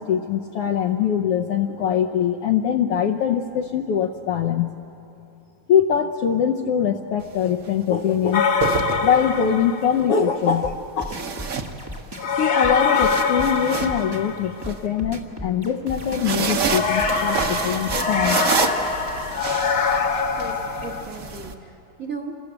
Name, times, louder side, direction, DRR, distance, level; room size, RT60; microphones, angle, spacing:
voice 1, 0.0-4.7 5.7-8.5 9.0-11.1 12.4-18.4, left 8 dB, 75° left, 3 dB, 1.4 m, -22 dB
sound 1, 7.2-7.5 8.4-9.5 11.0-12.2 12.6-14.7 15.9-21.5, right 5 dB, 60° right, 0.8 m, -28 dB
sound 2, 8.3-10.1 12.2-14.7 16.6-21.0, left 5 dB, 45° left, 1.5 m, -24 dB
sound 3, 10.6-18.4, equal, 20° right, 0.6 m, -36 dB
voice 2, 20.4-22.4, right 4 dB, 45° right, 1 dB, 1.1 m, -36 dB
27.5 x 20.5 x 8.0 m, 2.7 s
omnidirectional pair, 3.4 m